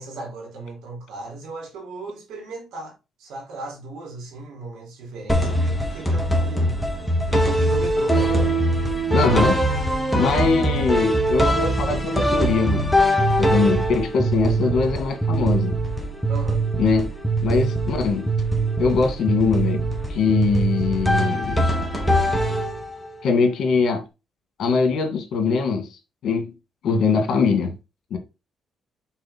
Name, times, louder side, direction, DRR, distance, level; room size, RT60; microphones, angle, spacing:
voice 1, 0.0-6.8 7.3-8.7 16.3-16.7, right 3 dB, 90° right, 3.3 m, -36 dB
sound 1, 5.3-23.1, right 1 dB, 5° left, 1.9 m, -22 dB
voice 2, 9.1-9.6 10.1-12.9 13.4-15.8 16.8-17.1 17.4-18.3 18.8-19.8 20.1-21.7 23.2-24.0 24.6-25.9 26.2-26.5 26.8-27.7 28.1-28.2, left 4 dB, 65° left, 2.1 m, -22 dB
5.7 x 4.5 x 4.4 m
cardioid pair, 90°, 0 cm